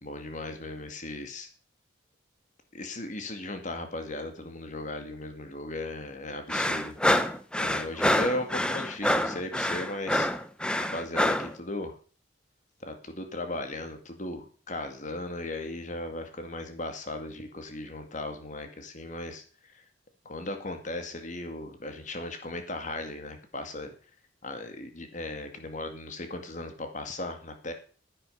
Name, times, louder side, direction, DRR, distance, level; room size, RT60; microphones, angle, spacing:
voice 1, 0.0-1.5 2.7-7.2 7.6-10.3 10.9-12.0 12.9-19.8 20.2-23.9 24.4-27.7, left 2 dB, 40° left, 6 dB, 2.1 m, -37 dB
sound 1, 6.5-11.5, left 1 dB, 5° left, 0.7 m, -26 dB
10.5 x 9.0 x 6.6 m, 0.40 s
head